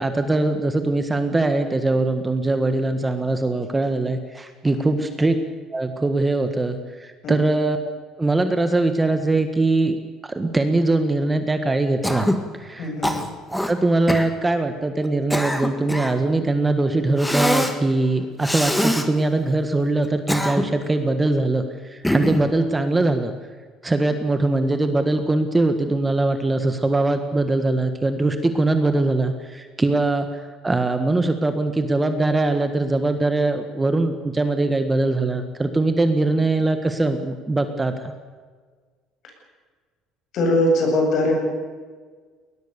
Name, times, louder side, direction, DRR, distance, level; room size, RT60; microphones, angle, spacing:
voice 1, 0.0-5.4 5.7-7.9 8.2-10.0 10.2-12.3 12.6-12.9 13.5-23.3 23.8-38.1, right 2 dB, 15° right, 8 dB, 1.5 m, -22 dB
Cough, 12.0-12.5 13.0-13.7 14.1-14.3 15.0-16.2 17.2-17.8 18.4-19.1 20.0-20.9 22.0-22.5, left 1 dB, 5° left, 1.8 m, -23 dB
voice 2, 12.8-13.2 40.3-41.4, left 1 dB, 55° left, 2 dB, 7.8 m, -21 dB
21.0 x 20.0 x 6.9 m, 1.5 s
cardioid pair, 130°, 0 cm